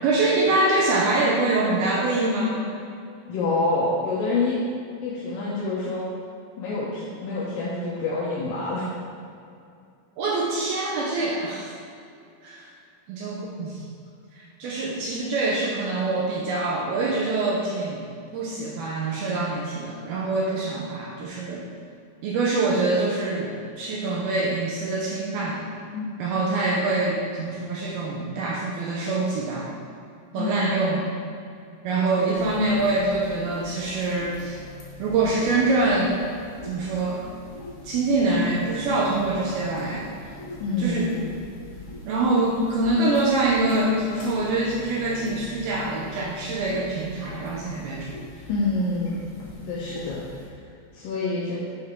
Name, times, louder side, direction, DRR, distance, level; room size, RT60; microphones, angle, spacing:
voice 1, 0.0-2.7 10.2-11.7 12.4-12.7 13.1-13.9 14.4-21.7 22.2-23.5 23.8-25.6 26.2-29.7 30.3-31.0 31.8-34.6 35.0-36.1 36.6-37.2 37.8-40.1 40.8-41.1 42.0-48.1, right 2 dB, 75° right, -3 dB, 2.4 m, -25 dB
voice 2, 3.3-4.6 5.0-6.0 6.6-8.8 25.9-26.1 30.4-30.8 31.9-32.6 40.6-41.2 48.5-49.2 49.6-50.2 50.9-51.6, left 3 dB, 70° left, -7 dB, 2.2 m, -27 dB
sound 1, 32.3-50.5, left 3 dB, 55° left, 2.1 m, -42 dB
8.7 x 6.8 x 3.7 m, 2.5 s
omnidirectional pair, 5.2 m